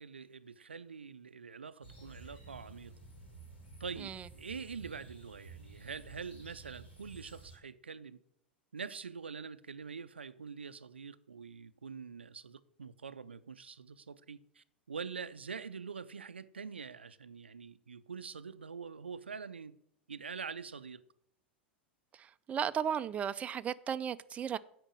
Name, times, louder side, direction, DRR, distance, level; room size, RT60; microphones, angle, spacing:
voice 1, 0.0-2.9 3.8-8.2 8.7-19.8 20.1-21.0, right 5 dB, 85° right, 0.4 m, -45 dB
sound 1, 1.8-7.6, right 3 dB, 75° left, 4.0 m, -53 dB
voice 2, 22.5-24.6, right 8 dB, 25° right, 0.4 m, -34 dB
8.8 x 5.2 x 7.4 m
figure-of-eight pair, 90°, 6 cm